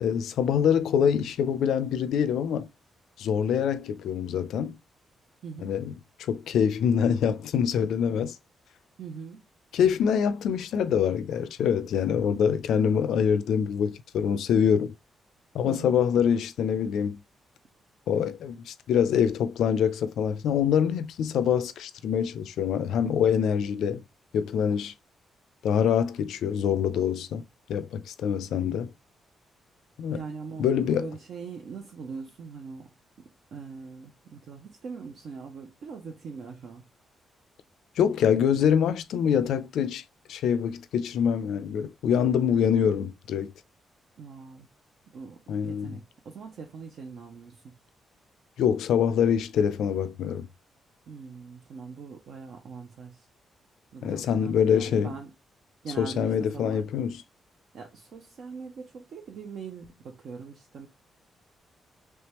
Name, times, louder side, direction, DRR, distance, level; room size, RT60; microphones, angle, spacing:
voice 1, 0.0-2.7 3.2-4.8 5.6-5.9 6.2-8.4 9.7-14.9 15.5-17.2 18.1-24.0 24.3-24.9 25.6-27.4 27.7-28.9 30.0-30.2 30.6-31.1 38.0-40.0 40.3-43.5 45.5-46.0 48.6-50.5 54.0-55.1 56.0-57.2, left 8 dB, 90° left, 0.4 m, -25 dB
voice 2, 5.4-5.7 9.0-9.4 15.6-16.0 30.1-32.9 33.2-36.8 44.2-44.7 45.1-47.7 51.1-53.3 53.9-55.3 55.8-56.8 57.7-60.9, right 5 dB, 55° right, 0.6 m, -42 dB
3.4 x 3.2 x 2.9 m
wide cardioid pair, 170°, 0 cm